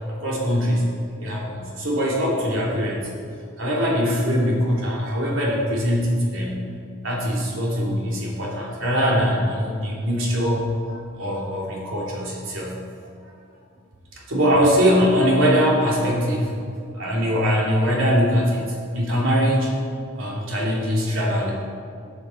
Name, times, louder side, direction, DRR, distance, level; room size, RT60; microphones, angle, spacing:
voice 1, 0.1-0.8 1.2-3.1 3.6-6.6 7.0-10.6 11.1-12.8 14.3-16.5 16.9-18.6 18.9-19.7 20.2-21.5, equal, 75° right, -4 dB, 2.7 m, -22 dB
13.5 x 7.1 x 4.5 m, 2.4 s
head